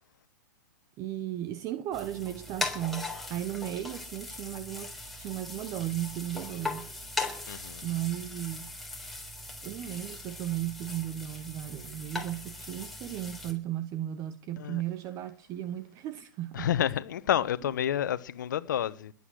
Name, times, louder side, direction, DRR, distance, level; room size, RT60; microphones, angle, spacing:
voice 1, 1.0-6.9 7.8-8.7 9.6-16.7, right 13 dB, 30° right, 1.1 m, -35 dB
sound 1, 1.9-13.5, left 2 dB, ahead, 3.7 m, -39 dB
voice 2, 7.5-7.8 14.6-14.8 16.5-19.1, left 10 dB, 65° left, 1.1 m, -29 dB
21.0 x 8.4 x 6.3 m
hypercardioid pair, 125°, 11 cm